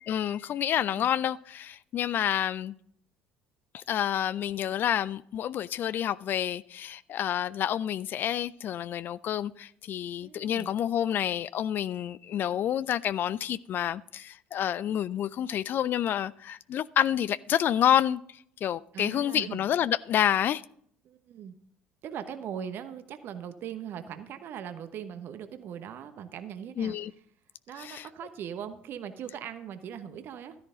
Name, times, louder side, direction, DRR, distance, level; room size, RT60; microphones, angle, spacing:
voice 1, 0.1-2.7 3.7-18.2 18.6-20.6 26.8-27.1 27.8-28.1, left 10 dB, 45° left, 0.4 m, -28 dB
voice 2, 10.2-10.7 18.9-19.7 21.0-21.5 22.0-27.0 27.7-30.6, right 8 dB, 50° right, 1.0 m, -40 dB
13.5 x 10.5 x 3.8 m
figure-of-eight pair, 60°, 5 cm